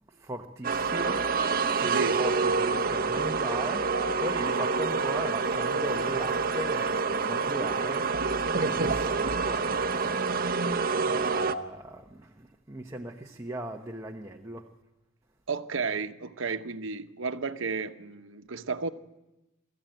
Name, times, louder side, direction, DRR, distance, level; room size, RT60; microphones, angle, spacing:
voice 1, 0.1-1.3 1.7-8.1 8.6-10.4 11.1-14.7, right 1 dB, 15° right, 1.1 m, -38 dB
sound 1, 0.6-11.6, right 4 dB, 45° right, 0.9 m, -27 dB
voice 2, 1.9-2.2 15.5-18.9, right 4 dB, 65° right, 1.1 m, -32 dB
23.5 x 14.5 x 9.1 m
head